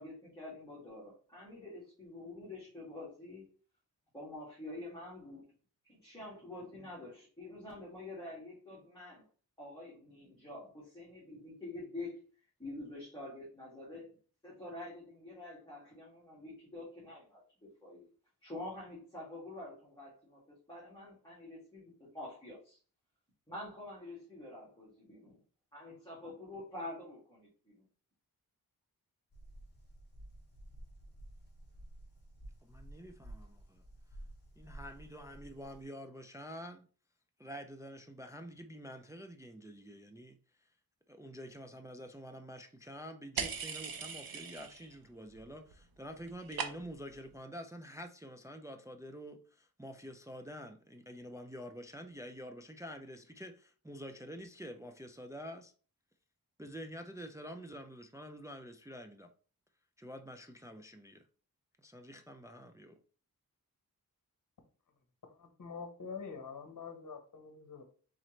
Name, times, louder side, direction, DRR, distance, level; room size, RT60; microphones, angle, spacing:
voice 1, 0.0-3.4 4.1-5.4 5.8-9.2 9.6-12.2 12.6-14.2 14.4-17.2 17.8-18.1 18.4-20.4 20.7-22.8 23.5-25.4 25.7-27.8, left 2 dB, 10° left, 2.1 m, -47 dB
sound 1, 29.3-35.8, right 1 dB, 25° left, 1.6 m, -52 dB
voice 2, 32.6-33.8 34.6-36.9 37.4-40.7 41.1-55.7 56.6-59.3 60.0-61.2 61.8-63.0, equal, 10° right, 0.4 m, -48 dB
sound 2, 43.4-45.0 45.3-45.8 46.0-47.1, right 6 dB, 70° right, 0.8 m, -40 dB
voice 3, 65.3-67.8, left 5 dB, 55° left, 1.1 m, -46 dB
4.2 x 3.8 x 3.1 m
wide cardioid pair, 115°, 37 cm